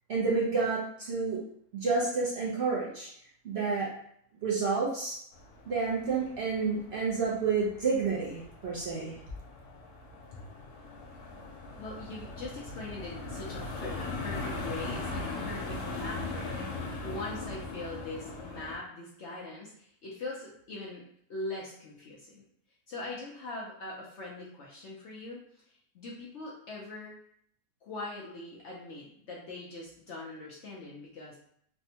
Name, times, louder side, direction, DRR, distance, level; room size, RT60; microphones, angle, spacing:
voice 1, 0.1-1.4 1.7-3.1 3.4-3.9 4.4-5.2 5.7-9.1, right 4 dB, 55° right, -6 dB, 0.7 m, -29 dB
sound 1, 5.3-18.8, left 3 dB, 85° left, 1.1 m, -40 dB
voice 2, 11.7-21.0 21.3-22.4 22.9-27.1 27.8-31.4, left 2 dB, 65° left, -4 dB, 0.7 m, -42 dB
3.3 x 2.1 x 2.7 m, 0.68 s
omnidirectional pair, 1.6 m